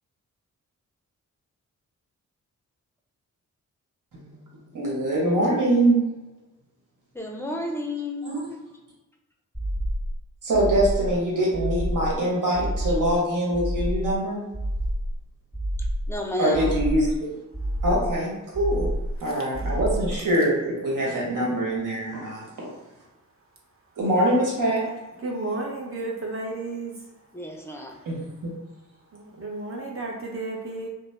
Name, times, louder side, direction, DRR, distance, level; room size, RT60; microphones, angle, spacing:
voice 1, 4.1-6.1 8.2-8.5 10.4-14.4 16.4-17.3 17.8-18.9 19.2-22.4 24.0-24.8 28.0-28.2, right 1 dB, 70° right, -4 dB, 1.2 m, -24 dB
voice 2, 7.1-8.3 16.1-16.7 27.3-28.0, left 1 dB, 10° left, 1 dB, 0.5 m, -31 dB
sound 1, 9.5-10.2 10.5-11.2 11.5-12.2 12.5-13.2 13.5-14.2 14.5-15.2 15.5-16.2 16.5-17.2 17.5-18.2 18.5-19.2 19.5-20.2, equal, 10° right, 1.2 m, -28 dB
voice 3, 25.2-26.9 29.1-30.9, right 2 dB, 40° right, -1 dB, 0.8 m, -32 dB
2.6 x 2.1 x 3.3 m, 1.1 s
cardioid pair, 70°, 32 cm